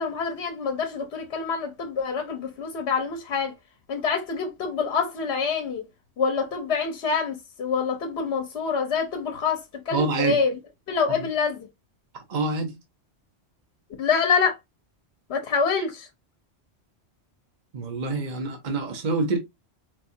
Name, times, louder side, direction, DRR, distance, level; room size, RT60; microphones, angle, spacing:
voice 1, 0.0-3.5 3.9-5.9 6.2-10.6 10.9-11.7 14.0-14.6 15.3-16.1, left 5 dB, 75° left, 1.0 m, -26 dB
voice 2, 9.9-10.4 11.2-11.3 12.3-12.8 17.7-19.4, right 3 dB, 45° right, 0.9 m, -26 dB
4.3 x 2.4 x 2.6 m
omnidirectional pair, 1.1 m